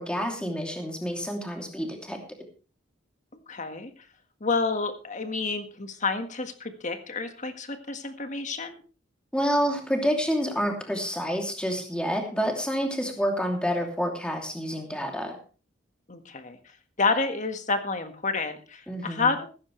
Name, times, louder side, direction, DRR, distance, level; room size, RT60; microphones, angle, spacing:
voice 1, 0.0-2.2 9.3-15.3 18.9-19.3, equal, 5° left, 2 dB, 2.8 m, -28 dB
voice 2, 3.5-3.9 4.4-8.8 16.1-16.6 17.0-19.5, left 4 dB, 40° left, 7 dB, 1.6 m, -29 dB
15.5 x 14.0 x 3.3 m, 0.36 s
head